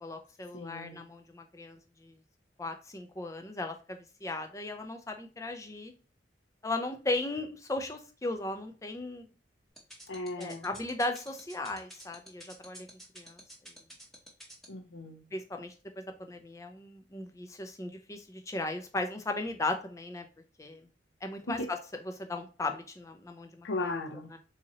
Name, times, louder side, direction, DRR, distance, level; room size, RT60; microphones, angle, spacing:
voice 1, 0.0-2.1 2.6-5.9 6.6-9.2 10.4-12.9 13.2-13.4 15.3-20.3 20.6-20.8 21.2-21.8 22.1-23.9 24.3-24.4, left 2 dB, 15° left, 0.4 m, -37 dB
voice 2, 0.5-1.1 10.1-10.7 14.7-15.2 21.5-21.7 23.6-24.3, left 2 dB, 75° left, 0.7 m, -36 dB
sound 1, 9.8-14.7, right 1 dB, ahead, 0.8 m, -48 dB
3.8 x 2.8 x 2.9 m
head